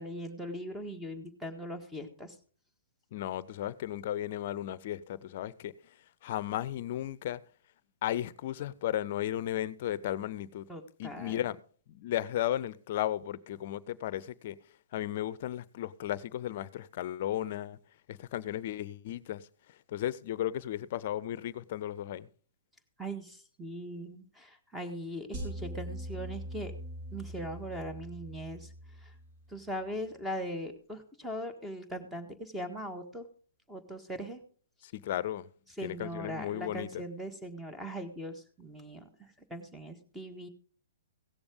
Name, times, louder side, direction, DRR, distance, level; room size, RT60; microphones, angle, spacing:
voice 1, 0.0-2.3 10.7-11.4 23.0-26.7 27.1-28.7 29.0-29.1 29.5-33.2 33.7-34.4 35.8-40.5, equal, 5° right, 1.6 m, -40 dB
voice 2, 3.1-5.7 6.2-7.4 8.0-10.7 11.0-11.6 11.9-14.6 14.9-17.8 18.1-19.5 19.9-22.3 34.8-35.5 35.8-37.0, left 12 dB, 50° left, 0.7 m, -35 dB
sound 1, 25.3-29.7, equal, 45° right, 6.7 m, -42 dB
16.5 x 7.0 x 5.2 m
hypercardioid pair, 130°, 0 cm